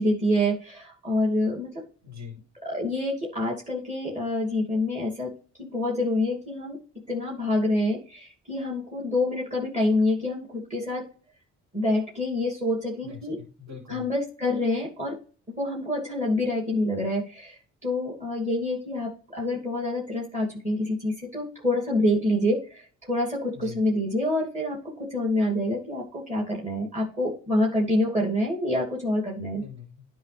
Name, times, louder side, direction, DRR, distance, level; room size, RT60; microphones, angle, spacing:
voice 1, 0.0-1.7 2.6-5.3 5.6-11.1 11.7-13.4 13.9-15.1 15.6-29.6, left 1 dB, 25° right, -2 dB, 2.6 m, -27 dB
voice 2, 2.0-2.4 13.0-14.1 23.5-23.8 29.5-30.0, left 7 dB, 65° right, 0 dB, 3.5 m, -42 dB
10.0 x 5.2 x 3.3 m, 0.39 s
cardioid pair, 90°, 30 cm